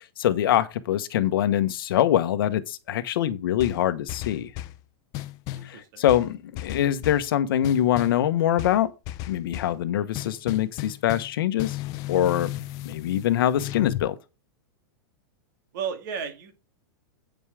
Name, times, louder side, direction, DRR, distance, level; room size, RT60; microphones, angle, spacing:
voice 1, 0.0-4.5 5.6-8.9 9.3-11.8 12.1-12.5 12.8-14.1, left 11 dB, 65° left, 1.1 m, -24 dB
sound 1, 3.6-4.8 5.1-5.7 6.1-7.3 7.6-8.2 8.6-9.8 10.1-14.1, left 14 dB, 30° left, 0.5 m, -35 dB
voice 2, 5.6-6.1 15.7-16.5, right 7 dB, 55° right, 2.1 m, -34 dB
8.9 x 5.4 x 4.9 m
supercardioid pair, 170°, 12 cm